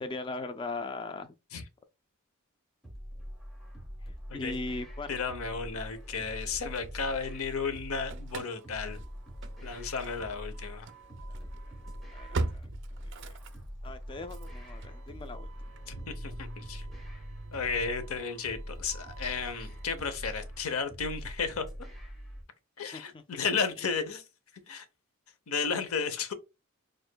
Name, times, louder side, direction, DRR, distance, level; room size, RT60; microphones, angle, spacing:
voice 1, 0.0-1.4 4.3-5.1 12.1-12.7 13.8-15.5 22.9-23.0, left 3 dB, 25° left, 0.3 m, -38 dB
sound 1, 2.8-22.4, equal, ahead, 1.0 m, -43 dB
voice 2, 5.1-9.0 9.6-10.9 15.9-16.9 17.5-21.7 22.8-24.2 24.7-24.9 25.5-26.3, left 5 dB, 90° left, 0.7 m, -33 dB
Engine starting / Slam, 6.1-7.5 7.8-20.8, right 3 dB, 55° right, 0.4 m, -43 dB
6.4 x 2.5 x 2.2 m
head